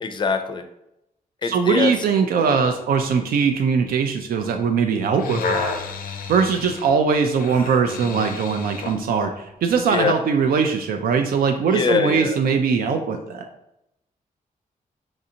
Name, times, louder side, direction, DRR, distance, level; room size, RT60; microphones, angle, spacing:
voice 1, 0.0-0.6 1.4-1.9 9.9-10.2 11.7-12.4, left 4 dB, 30° left, 8 dB, 0.4 m, -23 dB
voice 2, 1.4-5.7 6.3-13.4, right 5 dB, 85° right, 5 dB, 0.4 m, -21 dB
sound 1, 5.0-9.0 9.7-9.8, left 5 dB, 85° left, 0.5 m, -30 dB
5.0 x 2.6 x 2.7 m, 0.84 s
wide cardioid pair, 130°, 15 cm